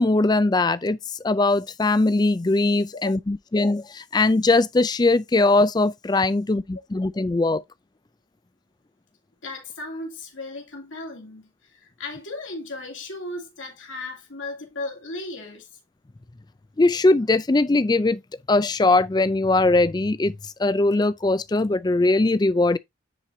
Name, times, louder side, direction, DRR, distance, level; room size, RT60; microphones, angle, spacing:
voice 1, 0.0-7.6 16.8-18.2 18.5-22.8, left 2 dB, 20° left, 0.3 m, -20 dB
voice 2, 9.4-15.7, left 2 dB, 75° left, 2.7 m, -36 dB
10.0 x 4.6 x 2.7 m
head